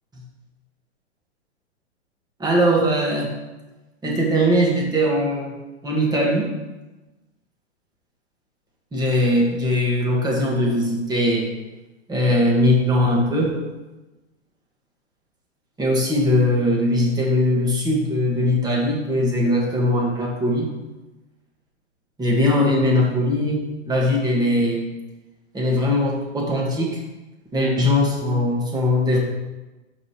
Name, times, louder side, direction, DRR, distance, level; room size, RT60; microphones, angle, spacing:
voice 1, 2.4-3.3 4.0-5.5 5.8-6.5 8.9-11.5 12.1-13.6 15.8-20.7 22.2-23.6 23.9-24.8 25.5-27.0 27.5-29.2, left 1 dB, 10° right, -2 dB, 1.7 m, -20 dB
5.4 x 5.0 x 6.4 m, 1.1 s
hypercardioid pair, 120°, 35 cm